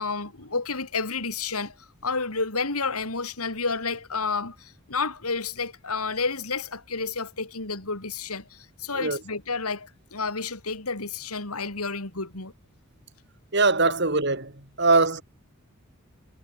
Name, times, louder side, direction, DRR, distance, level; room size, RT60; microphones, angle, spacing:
voice 1, 0.0-1.7 2.0-12.5, left 4 dB, 85° left, 3.6 m, -30 dB
voice 2, 13.5-14.5 14.8-15.2, right 3 dB, 50° right, 4.0 m, -21 dB
head